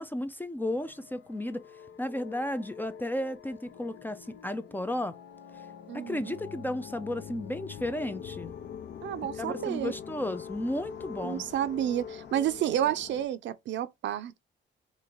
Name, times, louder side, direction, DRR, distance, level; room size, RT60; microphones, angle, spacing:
voice 1, 0.0-1.6 2.0-5.1 5.9-8.5 9.4-11.4, left 1 dB, 10° left, 0.4 m, -33 dB
sound 1, 0.7-13.3, left 8 dB, 60° left, 0.6 m, -44 dB
voice 2, 5.9-6.4 9.0-9.9 11.2-14.4, right 11 dB, 70° right, 0.5 m, -30 dB
3.1 x 2.5 x 3.7 m
cardioid pair, 90°, 20 cm